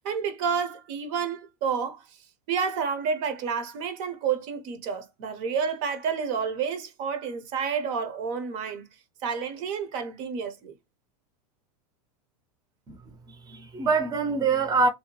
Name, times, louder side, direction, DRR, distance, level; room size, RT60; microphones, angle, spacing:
voice 1, 0.0-2.0 2.5-8.9 9.2-10.7, right 6 dB, 55° right, 0.7 m, -30 dB
voice 2, 12.9-14.9, right 4 dB, 20° right, 0.6 m, -25 dB
2.7 x 2.1 x 2.9 m
hypercardioid pair, 110°, 20 cm